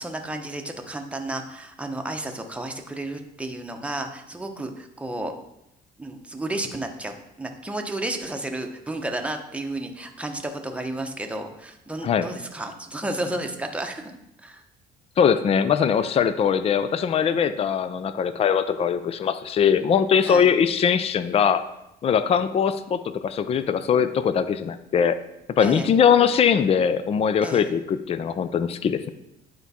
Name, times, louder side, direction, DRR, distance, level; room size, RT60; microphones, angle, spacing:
voice 1, 0.0-5.3 6.0-14.6 20.2-20.5 25.6-25.9 27.4-27.7, right 1 dB, 5° right, 4 dB, 0.9 m, -32 dB
voice 2, 15.2-21.6 22.0-25.2 25.6-29.1, left 7 dB, 35° left, 12 dB, 0.5 m, -21 dB
10.5 x 4.6 x 4.2 m, 0.86 s
cardioid pair, 110°, 17 cm